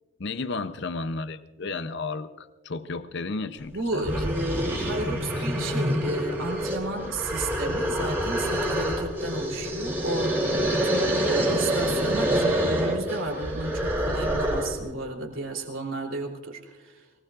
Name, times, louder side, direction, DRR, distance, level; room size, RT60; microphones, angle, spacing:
voice 1, 0.2-4.2 5.4-5.5, left 3 dB, 55° left, 11 dB, 0.6 m, -33 dB
sound 1, 3.6-3.7 4.0-14.8, equal, 10° right, 2.9 m, -26 dB
voice 2, 3.7-16.9, right 2 dB, 65° right, 0 dB, 3.2 m, -32 dB
24.0 x 19.0 x 2.5 m, 1.2 s
head